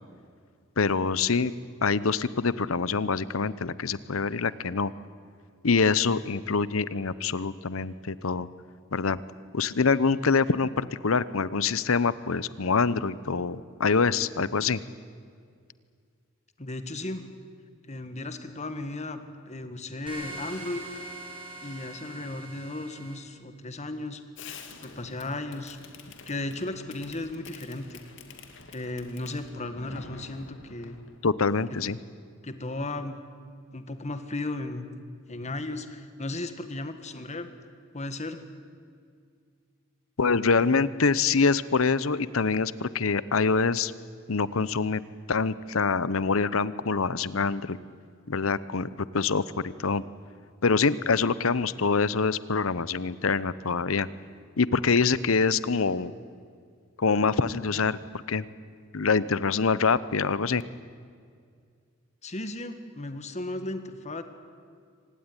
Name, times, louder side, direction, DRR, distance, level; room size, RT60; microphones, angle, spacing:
voice 1, 0.8-1.5 1.8-4.9 5.6-8.5 8.9-9.2 9.5-14.8 31.2-32.0 40.2-43.9 44.3-45.0 45.3-47.8 48.3-50.0 50.6-54.1 54.6-56.1 57.0-58.0 58.3-58.4 58.9-60.6, left 4 dB, 90° left, 17 dB, 0.8 m, -25 dB
voice 2, 16.6-17.3 17.9-19.2 19.4-20.8 21.6-24.2 24.8-25.8 26.3-28.0 28.7-31.0 32.4-33.2 33.7-34.9 35.3-37.5 37.9-38.4 62.2-64.2, left 2 dB, 35° left, 9 dB, 1.8 m, -35 dB
sound 1, 20.1-23.1, right 2 dB, 25° right, 5.4 m, -42 dB
Fireworks, 24.4-31.2, left 4 dB, 65° left, 2.4 m, -47 dB
25.0 x 18.5 x 9.9 m, 2.2 s
head